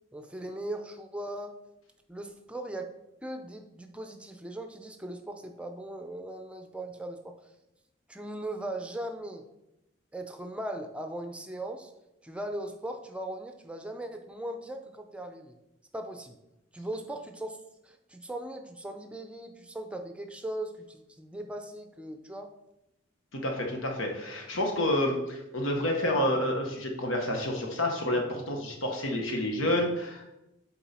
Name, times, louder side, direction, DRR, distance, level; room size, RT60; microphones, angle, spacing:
voice 1, 0.1-1.6 2.1-2.9 3.2-7.4 8.1-9.4 10.1-11.9 12.2-15.6 15.9-16.4 16.7-17.6 17.8-22.5, right 1 dB, 5° right, 5 dB, 0.5 m, -39 dB
voice 2, 23.3-30.3, left 1 dB, 90° left, 1 dB, 1.1 m, -29 dB
7.0 x 4.6 x 4.2 m, 0.91 s
head